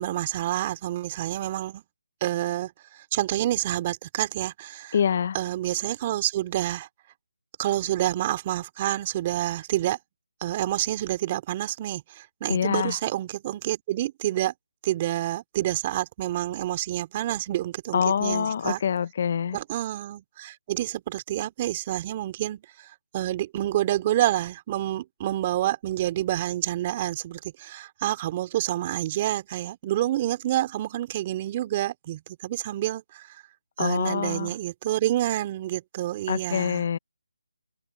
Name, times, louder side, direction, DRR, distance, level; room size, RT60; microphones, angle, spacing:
voice 1, 0.0-1.8 2.2-4.9 5.3-6.9 7.6-10.0 10.4-14.5 14.8-18.8 19.5-33.4 33.8-36.9, right 13 dB, 25° right, 2.8 m, -28 dB
voice 2, 4.9-5.4 12.5-13.0 17.9-19.6 33.8-34.5 36.3-37.0, left 7 dB, 45° left, 1.1 m, -25 dB
figure-of-eight pair, 160°, 0 cm